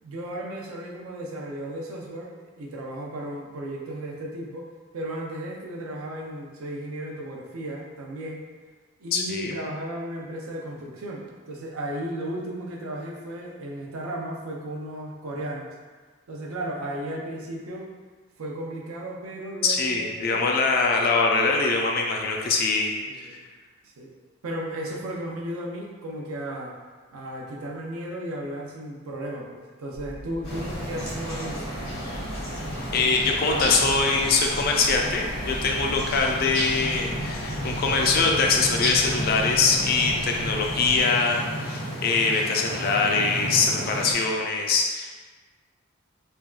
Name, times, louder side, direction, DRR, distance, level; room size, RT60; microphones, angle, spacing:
voice 1, 0.0-8.4 9.0-15.7 16.3-17.9 18.4-20.4 23.1-23.4 23.8-24.1 24.4-26.7 27.1-31.7 33.2-33.9, right 1 dB, 90° right, -1 dB, 0.5 m, -35 dB
voice 2, 9.1-9.6 19.6-22.9 32.9-45.3, left 4 dB, 45° left, 1 dB, 0.3 m, -23 dB
sound 1, 29.9-41.0, equal, 35° right, 0.5 m, -40 dB
sound 2, 30.4-44.1, equal, 85° left, 1.0 m, -32 dB
3.3 x 2.2 x 2.3 m, 1.4 s
head